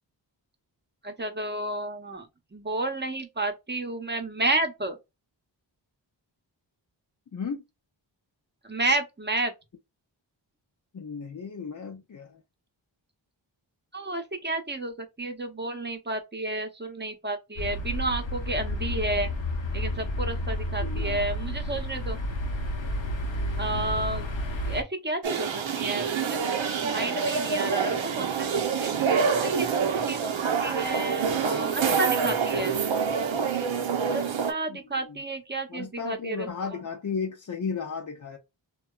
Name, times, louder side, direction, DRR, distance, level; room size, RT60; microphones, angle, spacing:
voice 1, 1.0-2.3 2.5-5.0 8.7-9.5 13.9-19.3 19.7-22.2 23.6-24.3 24.7-26.5 26.8-28.9 29.4-30.3 30.6-32.8 34.0-36.5, right 2 dB, 25° right, 0.8 m, -31 dB
voice 2, 7.3-7.6 10.9-12.4 20.8-21.2 23.7-24.0 34.7-35.2 35.7-38.4, left 5 dB, 45° left, 0.5 m, -35 dB
sound 1, 17.6-24.8, left 1 dB, 75° left, 0.8 m, -31 dB
sound 2, 25.2-34.5, right 6 dB, 80° right, 0.7 m, -26 dB
2.8 x 2.3 x 2.2 m
cardioid pair, 45°, 46 cm